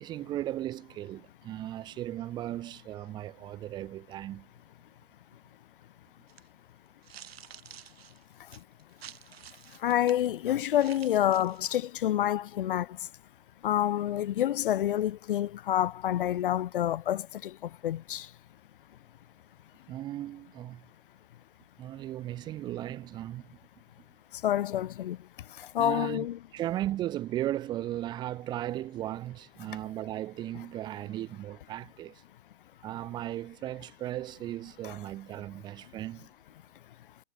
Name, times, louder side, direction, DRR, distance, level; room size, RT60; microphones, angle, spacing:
voice 1, 0.0-4.5 19.9-20.8 21.8-23.5 25.8-32.2 32.8-36.3, right 13 dB, 15° right, 1.0 m, -36 dB
sound 1, 6.3-6.5 7.0-10.3 10.7-11.8, right 10 dB, 60° right, 6.5 m, -50 dB
voice 2, 9.8-12.9 13.6-17.5 17.8-18.3 24.4-25.2 25.7-26.4 34.8-35.0, left 12 dB, 50° left, 0.9 m, -28 dB
hypercardioid pair, 170°, 34 cm